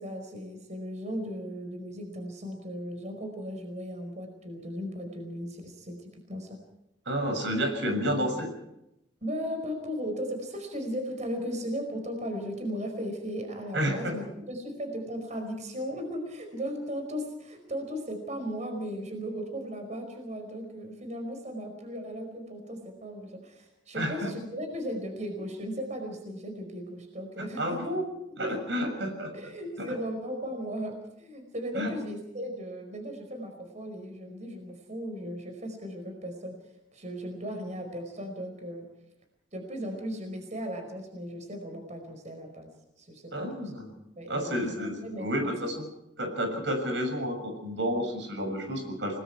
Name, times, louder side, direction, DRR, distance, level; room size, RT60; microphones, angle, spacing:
voice 1, 0.0-6.6 9.2-27.8 28.5-28.6 29.3-36.6 36.9-38.9 39.5-42.7 43.0-43.7 44.2-45.5, equal, 40° right, 5 dB, 4.9 m, -36 dB
voice 2, 7.0-8.5 13.7-14.2 23.9-24.3 27.6-28.1 28.4-29.3 29.8-29.9 31.7-31.9 43.3-43.9 44.3-45.8 46.2-49.2, equal, 85° right, 4 dB, 6.7 m, -30 dB
30.0 x 20.5 x 4.7 m, 0.85 s
head